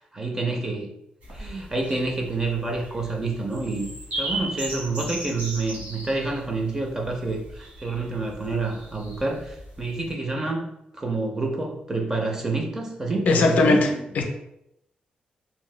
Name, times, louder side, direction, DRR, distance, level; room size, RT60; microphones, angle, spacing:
voice 1, 0.1-0.9 1.3-3.9 4.2-10.7 10.9-13.8, right 3 dB, 20° right, 1 dB, 0.4 m, -28 dB
sound 1, 1.2-10.1, right 1 dB, 65° right, 1.1 m, -37 dB
voice 2, 13.3-14.2, left 3 dB, 65° left, 3 dB, 0.5 m, -19 dB
2.6 x 2.2 x 3.1 m, 0.80 s
wide cardioid pair, 170°, 3 cm